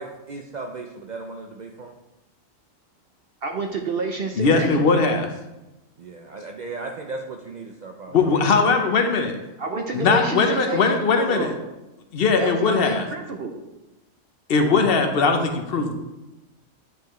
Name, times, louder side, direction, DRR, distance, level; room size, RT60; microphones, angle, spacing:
voice 1, 0.0-1.9 6.0-8.6, right 3 dB, 85° right, 2 dB, 0.4 m, -36 dB
voice 2, 3.4-4.8 9.6-10.9 11.3-11.6 12.4-13.5, right 3 dB, 55° right, 3 dB, 0.8 m, -29 dB
voice 3, 4.4-5.3 8.1-9.4 9.9-11.5 12.1-13.0 14.5-15.9, left 4 dB, 50° left, 5 dB, 0.9 m, -20 dB
9.3 x 4.8 x 3.0 m, 0.99 s
omnidirectional pair, 1.4 m